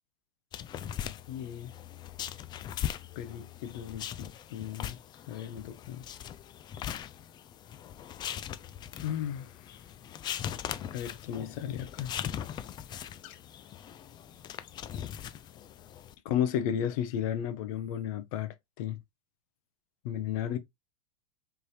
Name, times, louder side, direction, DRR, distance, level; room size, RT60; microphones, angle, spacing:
sound 1, 0.5-16.1, left 10 dB, 20° left, 0.4 m, -40 dB
voice 1, 1.3-1.7 3.2-5.0 5.3-6.0 9.0-9.5 10.9-12.1 13.2-13.3 16.2-19.0 20.0-20.6, left 10 dB, 60° left, 0.9 m, -34 dB
4.2 x 3.5 x 3.2 m
supercardioid pair, 135°, 20 cm